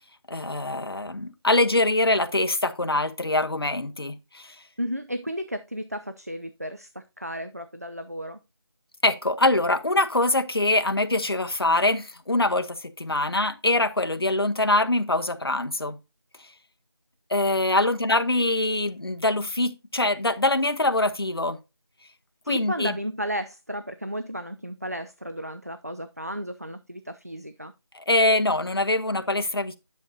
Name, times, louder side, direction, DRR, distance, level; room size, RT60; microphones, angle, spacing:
voice 1, 0.3-4.6 9.0-16.0 17.3-21.6 22.5-23.0 27.9-29.7, left 2 dB, 60° left, 0.9 m, -24 dB
voice 2, 4.8-8.4 17.7-17.9 22.4-27.7, equal, 35° right, 0.4 m, -33 dB
10.5 x 6.2 x 2.7 m
figure-of-eight pair, 175°, 14 cm